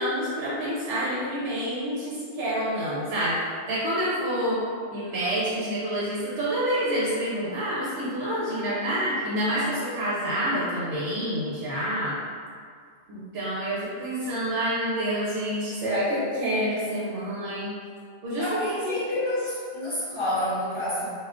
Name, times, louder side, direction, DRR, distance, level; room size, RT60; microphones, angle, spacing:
voice 1, 0.0-4.6 4.9-12.2 13.1-17.7 18.2-19.0, equal, 60° right, -8 dB, 0.8 m, -28 dB
voice 2, 18.4-21.1, left 1 dB, 30° left, -9 dB, 0.6 m, -28 dB
3.5 x 2.3 x 2.4 m, 2.1 s
omnidirectional pair, 1.2 m